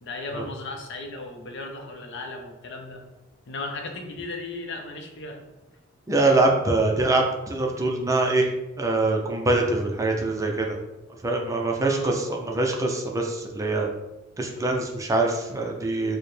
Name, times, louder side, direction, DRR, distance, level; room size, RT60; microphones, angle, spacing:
voice 1, 0.0-3.0 3.5-5.4 11.8-12.3, left 3 dB, 60° left, 3 dB, 0.6 m, -36 dB
voice 2, 6.1-8.5 8.8-10.8 11.2-13.9 14.4-16.2, right 2 dB, 15° right, 1 dB, 0.4 m, -24 dB
4.6 x 2.1 x 3.2 m, 1.0 s
head